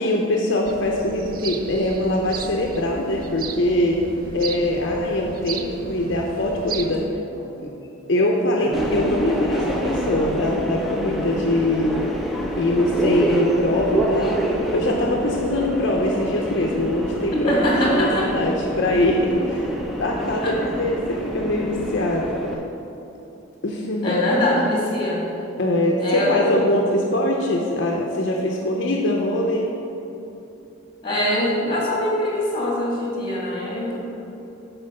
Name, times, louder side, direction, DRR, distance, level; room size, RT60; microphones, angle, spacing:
voice 1, 0.0-4.0 4.3-7.0 8.1-12.0 12.6-14.4 14.7-17.5 17.9-19.7 20.0-22.3 23.6-24.1 25.6-29.7, left 1 dB, 60° left, -1 dB, 0.6 m, -22 dB
sound 1, 0.7-7.1, right 5 dB, 45° right, 0.3 m, -35 dB
voice 2, 8.6-8.9 17.3-18.3 20.4-20.5 24.0-25.2 26.0-26.7 31.0-34.0, left 1 dB, 25° left, -4 dB, 1.9 m, -23 dB
Subway metro underground, 8.7-22.5, right 1 dB, ahead, 0.6 m, -27 dB
7.8 x 4.4 x 6.5 m, 2.9 s
head